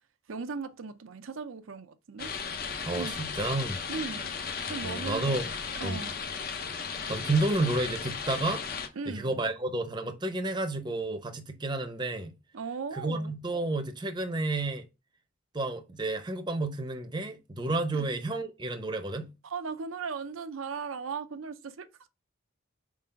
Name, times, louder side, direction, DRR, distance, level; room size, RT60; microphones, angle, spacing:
voice 1, 0.3-2.3 2.9-3.2 3.9-4.3 4.7-5.3 5.8-6.1 9.0-9.4 12.5-13.3 17.9-18.1 19.4-22.1, right 5 dB, 75° right, 0.6 m, -37 dB
sound 1, 2.2-8.9, left 5 dB, 45° left, 0.8 m, -35 dB
voice 2, 2.8-3.8 4.8-5.5 5.8-6.0 7.1-8.6 9.1-12.3 12.9-14.9 15.5-19.3, right 2 dB, 20° right, 0.7 m, -31 dB
4.7 x 3.7 x 5.6 m
head